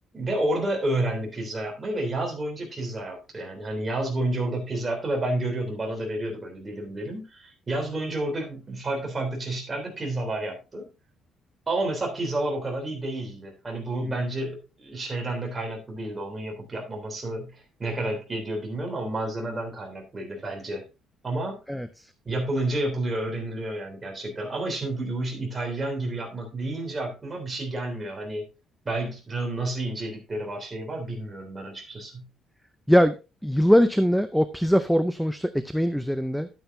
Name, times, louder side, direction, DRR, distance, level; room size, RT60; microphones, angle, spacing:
voice 1, 0.1-10.9 11.7-20.8 21.2-21.6 22.3-28.5 28.9-32.3, right 1 dB, 20° right, 1 dB, 3.3 m, -30 dB
voice 2, 21.7-22.1 32.9-33.1 33.4-36.5, equal, ahead, 11 dB, 0.5 m, -22 dB
11.0 x 9.1 x 2.7 m, 0.28 s
cardioid pair, 165°, 0 cm